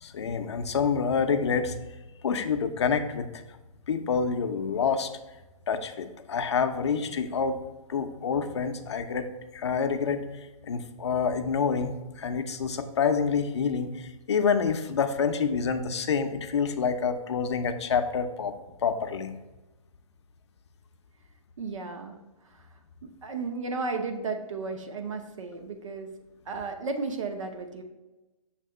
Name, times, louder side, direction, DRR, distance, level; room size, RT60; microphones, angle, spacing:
voice 1, 0.0-1.8 2.2-3.4 3.9-5.1 5.7-7.6 7.9-18.6 18.8-19.3, left 6 dB, 50° left, 7 dB, 0.5 m, -27 dB
voice 2, 21.6-22.2 22.4-22.6 23.0-26.1 26.5-27.8, right 4 dB, 60° right, 6 dB, 0.8 m, -34 dB
6.6 x 2.8 x 5.3 m, 1.1 s
hypercardioid pair, 180°, 18 cm